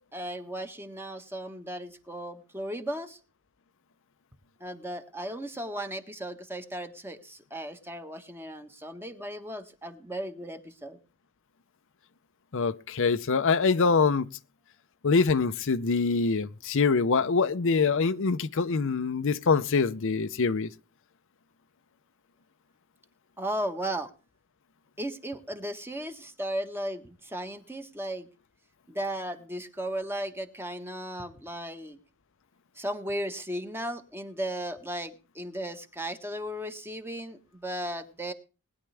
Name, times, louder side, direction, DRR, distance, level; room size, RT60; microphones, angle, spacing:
voice 1, 0.1-3.2 4.6-11.0 23.4-24.1 25.0-28.3 28.9-32.0 32.8-38.3, right 1 dB, 10° right, 1.4 m, -36 dB
voice 2, 12.5-14.3 15.0-20.7, left 4 dB, 65° left, 0.6 m, -24 dB
20.0 x 10.5 x 3.4 m
head